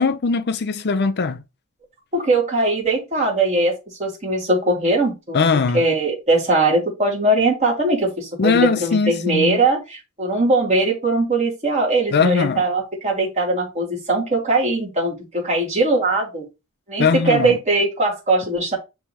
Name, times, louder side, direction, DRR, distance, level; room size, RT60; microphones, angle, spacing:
voice 1, 0.0-1.4 5.3-5.8 8.4-9.6 12.1-12.6 17.0-17.6, left 4 dB, 50° left, 0.5 m, -20 dB
voice 2, 2.1-3.7 4.0-5.4 5.7-16.5 16.9-18.8, right 2 dB, 35° right, 2.7 m, -20 dB
9.9 x 3.3 x 2.9 m
head